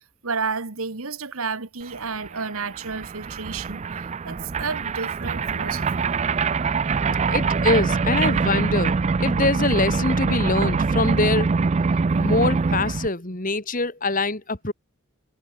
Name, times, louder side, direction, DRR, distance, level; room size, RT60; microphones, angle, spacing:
voice 1, 0.2-4.0 4.2-6.1, right 4 dB, 75° right, 1.7 m, -31 dB
sound 1, 1.9-2.0 2.2-13.1, right 4 dB, 30° right, 0.4 m, -24 dB
voice 2, 7.3-8.9 9.2-11.5 12.2-14.7, left 2 dB, 40° left, 2.4 m, -24 dB
head